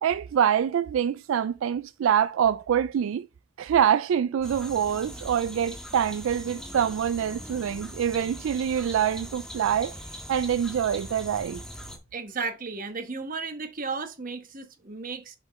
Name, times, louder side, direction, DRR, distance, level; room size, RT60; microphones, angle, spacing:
voice 1, 0.0-3.3 3.6-10.0 10.3-11.6, right 8 dB, 70° right, 0.3 m, -25 dB
sound 1, 4.4-12.0, equal, 5° left, 1.5 m, -41 dB
voice 2, 12.1-15.4, right 4 dB, 40° right, 1.1 m, -34 dB
7.5 x 5.1 x 3.1 m
head